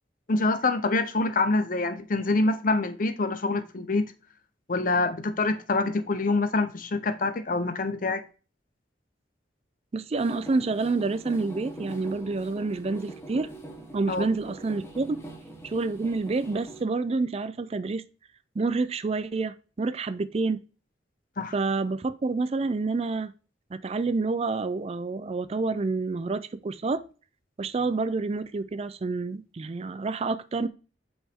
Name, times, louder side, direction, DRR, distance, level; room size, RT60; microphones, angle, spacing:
voice 1, 0.3-4.1 4.7-8.2 14.1-14.3 21.4-21.5, left 3 dB, 50° left, 0.7 m, -26 dB
voice 2, 9.9-13.5 13.9-15.2 15.6-18.0 18.6-20.6 21.5-23.3 23.7-27.1 27.6-30.7, right 3 dB, 35° right, 0.4 m, -28 dB
sound 1, 10.1-16.8, right 1 dB, 15° left, 1.5 m, -43 dB
8.0 x 5.3 x 3.5 m
head